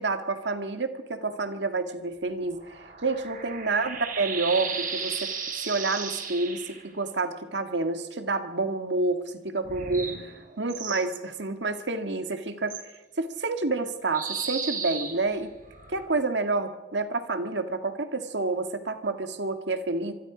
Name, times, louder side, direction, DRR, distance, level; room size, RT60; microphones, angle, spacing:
voice 1, 0.0-15.5 15.9-20.1, right 3 dB, 70° right, 8 dB, 1.8 m, -29 dB
sound 1, 2.3-6.8 9.6-11.1 12.7-12.8 14.1-16.1, right 6 dB, 50° right, 3.6 m, -35 dB
25.5 x 23.5 x 5.0 m, 1.2 s
head